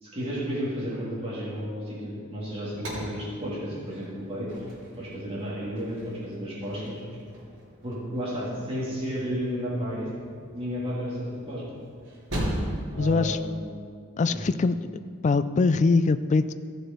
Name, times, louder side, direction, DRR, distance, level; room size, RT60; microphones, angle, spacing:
voice 1, 0.0-4.5 5.0-7.0 7.8-10.1 10.5-11.7 12.9-13.5 14.3-14.4, equal, 25° right, -8 dB, 2.6 m, -32 dB
sound 1, 2.4-13.0, equal, 60° right, 3.0 m, -39 dB
voice 2, 13.0-13.4 14.2-14.8 15.2-16.5, left 4 dB, 35° left, 13 dB, 0.3 m, -22 dB
14.5 x 6.7 x 4.5 m, 2.1 s
head